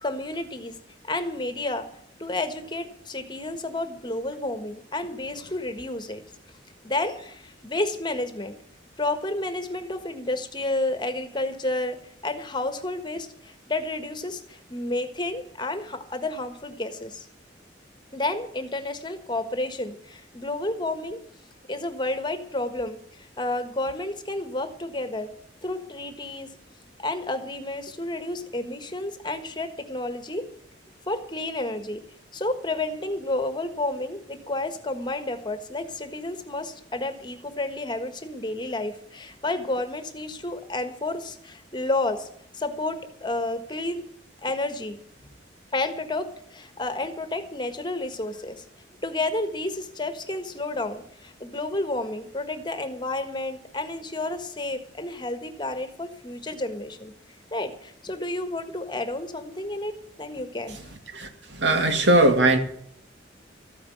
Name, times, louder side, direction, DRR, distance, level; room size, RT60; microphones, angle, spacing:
voice 1, 0.0-0.7 1.0-1.9 2.2-6.2 6.8-8.5 9.0-12.0 12.2-17.3 18.1-21.2 21.7-25.3 25.6-26.5 27.0-30.4 31.1-32.0 32.3-42.3 42.5-44.0 44.4-45.0 45.7-48.6 49.0-57.1 57.5-60.8, left 2 dB, 25° left, 9 dB, 1.5 m, -31 dB
voice 2, 61.1-62.6, right 1 dB, 70° right, 6 dB, 2.3 m, -20 dB
14.0 x 9.6 x 8.0 m, 0.66 s
head